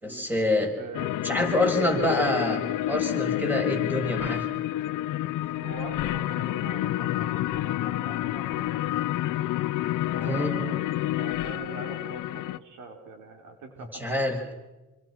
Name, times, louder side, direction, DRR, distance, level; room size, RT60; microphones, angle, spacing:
voice 1, 0.0-0.7 1.2-4.5 10.3-10.6 14.0-14.4, left 1 dB, 5° right, 2 dB, 6.7 m, -26 dB
voice 2, 0.8-1.9 5.6-9.0 10.1-10.8 11.2-14.5, right 3 dB, 90° right, 5 dB, 4.1 m, -43 dB
sound 1, 0.9-12.6, left 14 dB, 85° left, 0.8 m, -29 dB
27.5 x 26.0 x 6.2 m, 1.1 s
cardioid pair, 90°, 30 cm